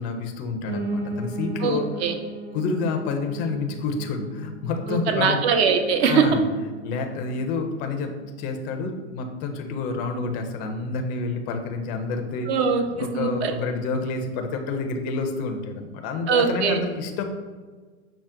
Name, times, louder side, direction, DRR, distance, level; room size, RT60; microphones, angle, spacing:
voice 1, 0.0-1.9 2.5-5.4 6.0-6.4 6.8-8.1 8.4-12.5 13.0-17.2, left 4 dB, 25° left, 4 dB, 0.4 m, -28 dB
Piano, 0.6-9.7 10.1-11.3 11.6-11.7 11.9-12.0 12.2-12.3 12.9-13.0, right 1 dB, 80° right, 1.3 m, -37 dB
voice 2, 1.6-2.1 4.9-6.2 12.5-13.5 16.3-16.8, right 6 dB, 60° right, 5 dB, 0.7 m, -22 dB
5.6 x 2.1 x 3.6 m, 1.4 s
hypercardioid pair, 125°, 35 cm